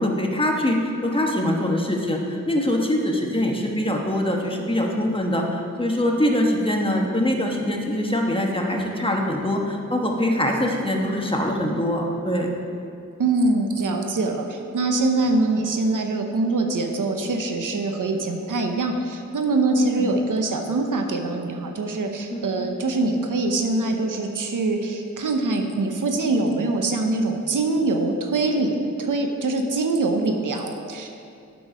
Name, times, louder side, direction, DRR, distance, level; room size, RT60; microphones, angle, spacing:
voice 1, 0.0-12.5 20.0-20.1 22.3-22.5, left 1 dB, 15° left, 0 dB, 1.3 m, -23 dB
voice 2, 13.2-31.1, right 2 dB, 80° right, 4 dB, 0.8 m, -23 dB
8.3 x 6.2 x 5.0 m, 2.6 s
cardioid pair, 50°, 31 cm